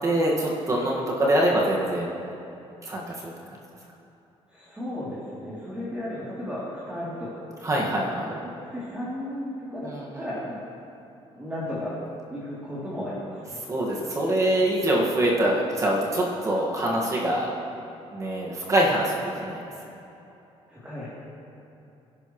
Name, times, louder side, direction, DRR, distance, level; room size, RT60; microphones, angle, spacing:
voice 1, 0.0-2.1 2.9-3.3 7.6-8.3 9.8-10.3 13.7-17.5 18.1-19.6, right 1 dB, 30° right, -3 dB, 1.8 m, -24 dB
voice 2, 4.5-7.4 8.0-10.6 11.3-12.0 12.3-13.6 20.7-21.1, left 1 dB, 10° right, -9 dB, 3.1 m, -34 dB
27.5 x 11.5 x 3.2 m, 2.9 s
cardioid pair, 155°, 11 cm